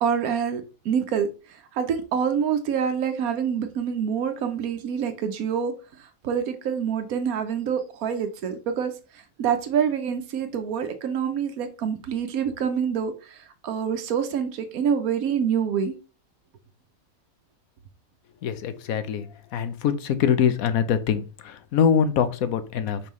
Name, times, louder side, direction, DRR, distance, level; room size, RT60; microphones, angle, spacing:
voice 1, 0.0-5.7 6.0-15.9, right 7 dB, 90° right, 1.2 m, -26 dB
voice 2, 18.4-19.2 19.5-23.0, left 7 dB, 80° left, 1.2 m, -23 dB
5.6 x 5.4 x 3.1 m
omnidirectional pair, 1.5 m